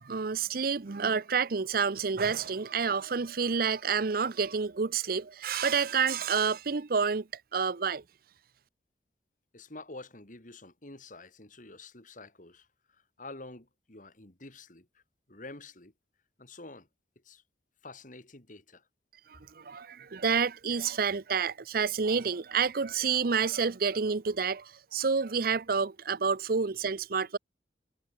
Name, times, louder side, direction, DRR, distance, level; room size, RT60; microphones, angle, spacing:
voice 1, 0.0-7.3 7.5-8.0 19.3-27.4, right 5 dB, 55° right, 0.7 m, -29 dB
voice 2, 9.5-15.0 15.3-15.9 16.4-16.9 17.2-17.4 17.8-18.9, left 2 dB, 45° left, 3.0 m, -48 dB
head